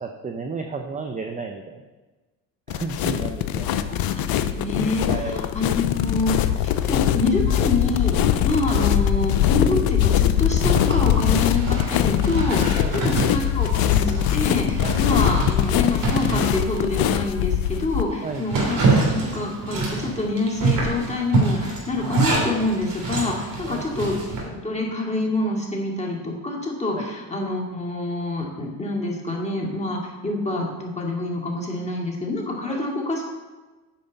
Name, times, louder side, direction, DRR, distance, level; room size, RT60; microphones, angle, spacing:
voice 1, 0.0-1.9 2.7-3.9 5.1-5.5 12.8-13.0 14.8-15.0 18.2-18.4 23.6-23.8 32.6-32.8, right 4 dB, 15° right, 4 dB, 0.7 m, -33 dB
sound 1, 2.7-18.0, left 11 dB, 50° left, 0.7 m, -22 dB
voice 2, 3.9-33.3, left 2 dB, 15° left, -2 dB, 2.5 m, -26 dB
Zipper (clothing), 10.6-17.2 17.6-17.7 18.1-24.4, right 3 dB, 45° right, 3.1 m, -26 dB
8.8 x 5.3 x 5.4 m, 1.2 s
hypercardioid pair, 70°, 46 cm